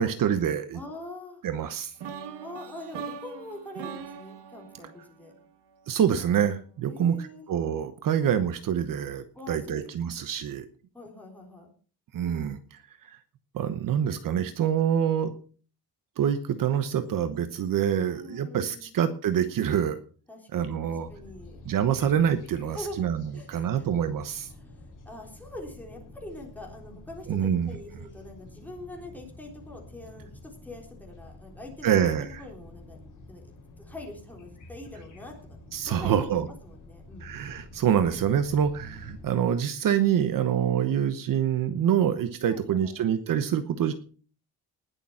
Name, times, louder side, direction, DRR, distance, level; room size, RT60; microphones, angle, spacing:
voice 1, 0.0-0.8 1.4-1.9 5.9-10.7 12.1-12.8 13.1-13.2 13.5-15.3 16.2-20.0 20.5-21.1 21.6-24.5 27.3-27.7 31.8-32.4 35.7-36.5 37.2-43.9, right 9 dB, 55° right, 10 dB, 1.1 m, -26 dB
voice 2, 0.7-1.4 2.4-5.3 6.9-7.5 9.3-9.9 10.9-11.7 17.9-18.9 20.3-21.6 22.6-23.1 23.3-23.9 24.6-33.0 33.3-35.6 35.8-36.1 36.6-37.3 42.5-43.0, left 1 dB, 5° left, -1 dB, 3.7 m, -44 dB
sound 1, 2.0-6.0, right 7 dB, 85° right, 1.8 m, -41 dB
sound 2, 21.0-39.3, left 2 dB, 50° left, 4.9 m, -48 dB
19.5 x 7.0 x 5.7 m, 0.41 s
cardioid pair, 165°, 40 cm